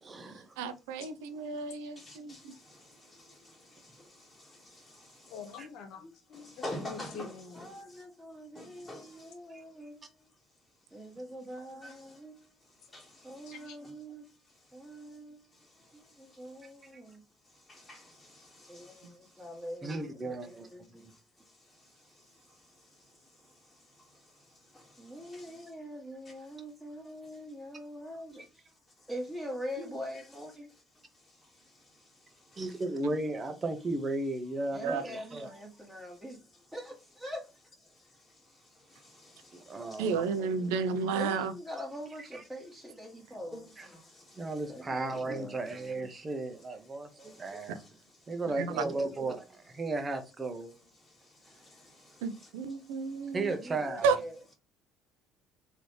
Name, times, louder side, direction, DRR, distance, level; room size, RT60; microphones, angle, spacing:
voice 1, 0.0-0.6 5.6-5.7 9.5-9.6 16.9-17.0 19.8-20.7 32.6-35.5 39.5-40.2 42.3-42.4 43.8-43.9 44.4-47.8 48.3-50.7 53.3-54.1, right 2 dB, 30° right, 1.1 m, -35 dB
voice 2, 0.6-2.5 33.0-33.1 34.8-35.0 40.0-41.5 47.7-47.8 48.6-48.7 52.2-53.5 54.0-54.2, right 5 dB, 75° right, 0.5 m, -32 dB
voice 3, 2.0-2.9 3.2-3.5 3.8-4.1 4.4-5.3 6.4-7.3 8.5-9.3 11.8-11.9 12.9-13.1 17.7-19.1 24.7-24.8 25.3-25.5 39.0-39.8 43.5-43.6 43.9-44.4 47.2-47.4 51.6-51.8, left 1 dB, 20° left, 1.7 m, -46 dB
voice 4, 5.3-7.7 13.5-13.8, left 5 dB, 65° left, 1.3 m, -46 dB
voice 5, 7.5-10.1 10.9-12.5 13.2-14.2 14.7-15.4 15.9-17.2 18.7-21.1 25.0-28.7 29.1-30.7 34.7-36.4 36.7-37.4 40.2-40.8 41.1-43.7 44.7-45.7 48.5-49.1 53.4-54.4, equal, 10° right, 1.8 m, -44 dB
4.0 x 3.1 x 3.2 m
hypercardioid pair, 60°, 0 cm